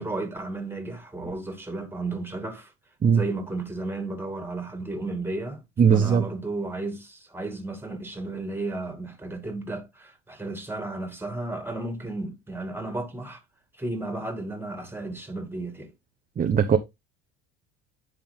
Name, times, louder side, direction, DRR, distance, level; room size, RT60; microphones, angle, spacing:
voice 1, 0.0-2.7 3.1-5.6 5.9-13.4 13.8-15.9, right 2 dB, 5° right, 2.0 m, -33 dB
voice 2, 5.8-6.2 16.4-16.8, right 7 dB, 25° right, 0.7 m, -19 dB
10.5 x 3.6 x 3.5 m
supercardioid pair, 85°, 34 cm